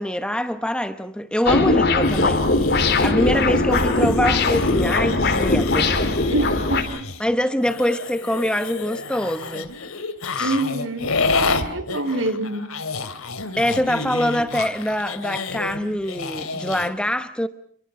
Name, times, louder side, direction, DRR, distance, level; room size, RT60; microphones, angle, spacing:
voice 1, 0.0-5.9 7.2-9.7 10.3-10.6 12.1-12.3 13.6-17.5, equal, 5° left, 0.9 m, -24 dB
sound 1, 1.5-6.8, left 2 dB, 50° left, 3.7 m, -20 dB
sound 2, 2.0-7.3 7.6-16.9, left 3 dB, 80° left, 2.9 m, -29 dB
voice 2, 6.3-7.1 10.4-11.1 11.7-12.7, right 2 dB, 60° right, 3.7 m, -25 dB
29.5 x 23.5 x 6.0 m
head